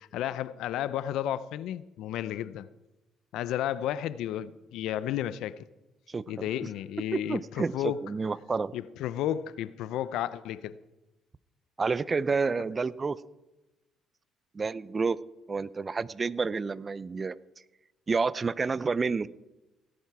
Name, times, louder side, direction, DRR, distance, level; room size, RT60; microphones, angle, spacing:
voice 1, 0.0-2.7 3.3-5.7 6.3-8.0 8.7-10.8, left 11 dB, 80° left, 0.5 m, -32 dB
voice 2, 6.1-6.5 7.1-8.7 11.8-13.2 14.5-15.2 15.5-17.4 18.1-19.3, right 4 dB, 30° right, 0.5 m, -29 dB
17.0 x 10.5 x 4.8 m
cardioid pair, 90°, 0 cm